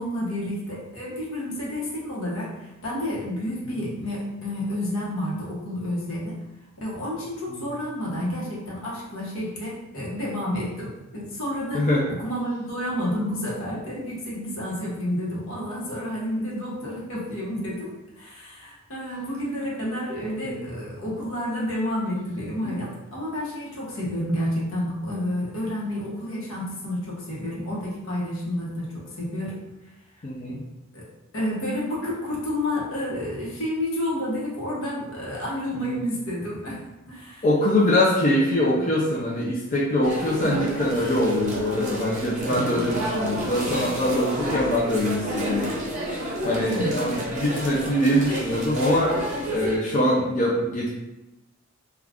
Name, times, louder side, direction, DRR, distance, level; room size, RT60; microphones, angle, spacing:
voice 1, 0.0-6.4 6.8-29.6 30.5-30.6 30.9-31.0 31.3-36.8 37.1-37.4 40.4-40.6 42.4-42.7 46.7-46.9, left 1 dB, 75° left, -5 dB, 0.9 m, -30 dB
voice 2, 30.2-30.6 35.7-36.0 37.4-45.7 46.4-50.9, left 1 dB, 40° left, -6 dB, 0.4 m, -23 dB
sound 1, 40.0-49.8, right 1 dB, 35° right, 0.6 m, -30 dB
2.4 x 2.3 x 3.4 m, 0.99 s
head